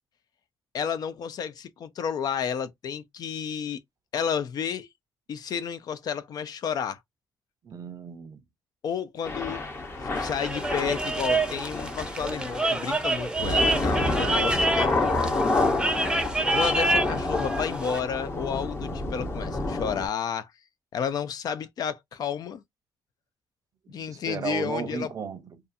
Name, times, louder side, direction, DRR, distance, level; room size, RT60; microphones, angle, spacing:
voice 1, 0.7-3.8 4.1-4.9 5.3-7.0 8.8-15.0 16.5-20.5 20.9-22.6 23.9-25.1, left 7 dB, 65° left, 0.4 m, -31 dB
voice 2, 7.6-8.4 23.9-25.6, right 6 dB, 55° right, 0.6 m, -35 dB
Thunder / Rain, 9.2-20.1, left 2 dB, 35° left, 0.8 m, -29 dB
sound 1, 10.2-18.0, right 2 dB, 10° right, 0.5 m, -28 dB
2.6 x 2.3 x 2.5 m
cardioid pair, 95°, 7 cm